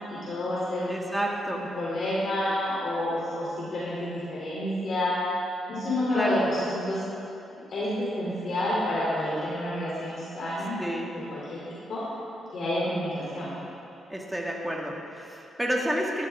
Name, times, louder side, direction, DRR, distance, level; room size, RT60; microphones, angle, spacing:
voice 1, 0.1-0.9 1.5-5.2 5.7-7.1 7.7-10.8 11.1-11.6 11.9-12.0 12.5-13.5, left 1 dB, 55° left, -8 dB, 3.2 m, -29 dB
voice 2, 0.9-1.7 6.1-6.4 10.8-11.1 14.1-16.3, right 1 dB, 5° right, -2 dB, 1.9 m, -30 dB
14.0 x 12.5 x 3.7 m, 2.8 s
cardioid pair, 95°, 0 cm